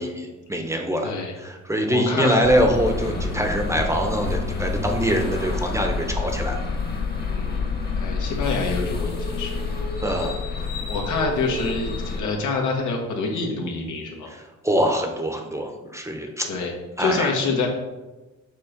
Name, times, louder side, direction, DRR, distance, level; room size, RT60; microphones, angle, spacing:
voice 1, 0.0-1.1 1.4-6.6 10.0-10.4 14.6-16.5 17.0-17.3, equal, 10° right, 3 dB, 0.8 m, -24 dB
voice 2, 1.0-1.3 1.9-2.4 7.3-7.7 8.0-9.6 10.9-14.3 16.5-16.7 17.0-17.7, left 4 dB, 75° left, 0 dB, 1.4 m, -26 dB
sound 1, 2.4-12.2, left 3 dB, 30° left, 1.3 m, -28 dB
7.3 x 3.0 x 5.1 m, 1.1 s
cardioid pair, 90°, 30 cm